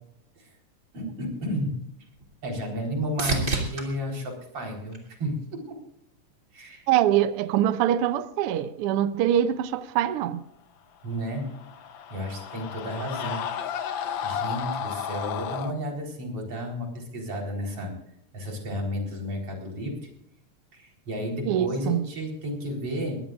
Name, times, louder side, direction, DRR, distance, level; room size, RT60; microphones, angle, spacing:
voice 1, 0.9-1.8 2.4-5.7 6.5-6.8 11.0-11.5 12.1-13.7 14.2-17.9 18.3-20.1 20.7-23.2, equal, 50° right, 5.1 m, -32 dB
sound 1, 1.4-5.7 6.2-6.8 14.6-14.7, right 2 dB, 25° right, 3.0 m, -34 dB
voice 2, 6.9-10.4 21.4-22.0, right 11 dB, 80° right, 1.3 m, -24 dB
Screaming, 11.3-15.7, left 8 dB, 85° left, 1.0 m, -33 dB
22.5 x 17.5 x 2.5 m
omnidirectional pair, 3.6 m